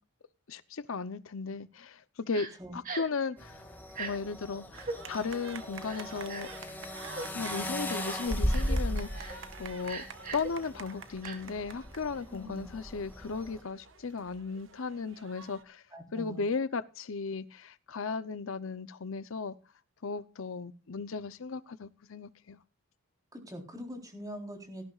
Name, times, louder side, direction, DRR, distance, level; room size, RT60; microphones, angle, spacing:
voice 1, 0.5-2.5 2.7-3.6 4.0-6.5 7.3-10.0 10.3-15.8 16.1-19.6 20.0-22.6, left 4 dB, 65° left, 0.7 m, -36 dB
Crying sobbing, 2.3-2.5 2.8-3.2 3.9-4.1 4.7-5.0 5.9-6.6 7.1-7.3 7.9-8.1 8.5-8.8 9.2-9.4 9.8-10.5 11.2-11.4, right 4 dB, 40° right, 3.0 m, -40 dB
sound 1, 3.4-13.6, equal, 10° left, 2.0 m, -37 dB
sound 2, 4.7-15.6, right 5 dB, 60° right, 1.4 m, -48 dB
voice 2, 12.3-12.6 15.9-16.4 23.3-24.9, equal, 15° right, 3.8 m, -43 dB
18.0 x 13.5 x 2.4 m
head